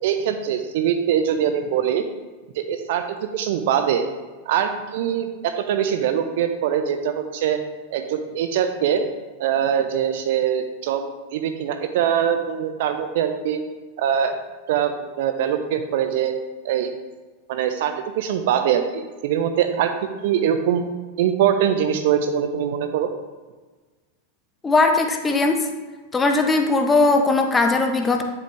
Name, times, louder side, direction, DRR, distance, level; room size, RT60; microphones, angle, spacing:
voice 1, 0.0-2.0 2.6-4.1 4.5-7.6 7.9-9.0 9.4-11.0 11.3-13.6 14.0-14.3 14.7-16.3 16.6-17.0 17.5-19.9 20.2-20.8 21.2-23.1, right 9 dB, 50° right, 8 dB, 1.0 m, -22 dB
voice 2, 24.6-25.7 26.1-28.2, left 3 dB, 15° left, 4 dB, 1.1 m, -19 dB
11.0 x 7.2 x 3.3 m, 1.3 s
figure-of-eight pair, 90°, 0 cm